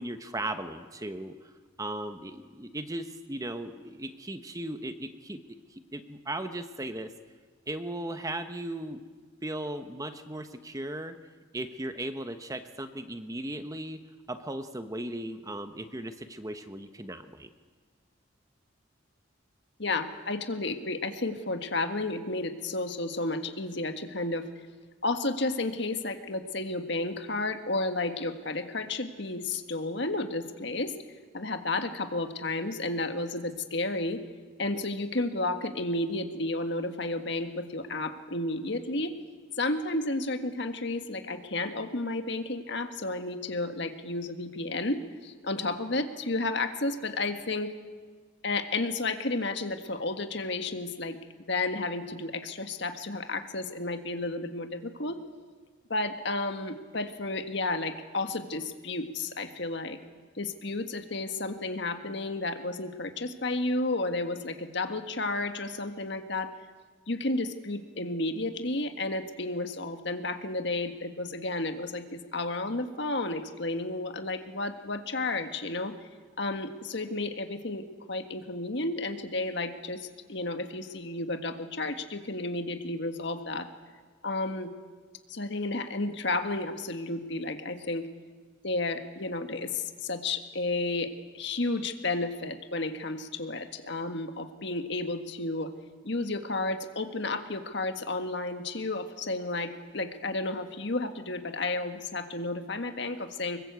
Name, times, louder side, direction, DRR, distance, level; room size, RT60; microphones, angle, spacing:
voice 1, 0.0-1.3 1.8-5.4 5.7-7.1 7.7-9.0 9.4-11.2 11.5-14.0 14.3-17.5, right 1 dB, 15° right, 9 dB, 1.0 m, -37 dB
voice 2, 19.8-24.4 25.0-30.9 31.3-34.2 34.6-39.1 39.6-47.7 48.4-51.2 51.5-55.2 55.9-60.0 60.4-66.5 67.1-75.9 76.4-83.7 84.2-84.7 85.3-88.1 88.6-95.7 96.0-103.6, left 2 dB, 60° left, 7 dB, 1.7 m, -32 dB
25.0 x 22.0 x 8.3 m, 1.5 s
head